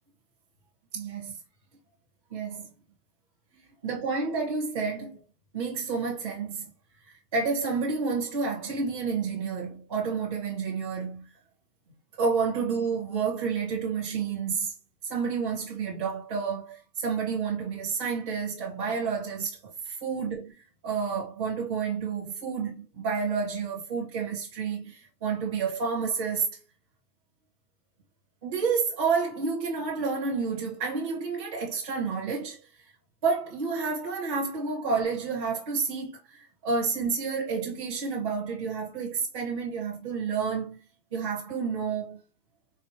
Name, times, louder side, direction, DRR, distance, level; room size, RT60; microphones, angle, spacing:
voice 1, 0.9-1.4 2.3-2.7 3.8-5.2 5.5-6.7 7.1-11.3 12.2-14.7 15.0-26.6 28.4-32.6 33.2-40.8 41.1-42.2, right 5 dB, 20° right, 0.6 m, -30 dB
4.2 x 2.0 x 2.9 m
hypercardioid pair, 150°, 49 cm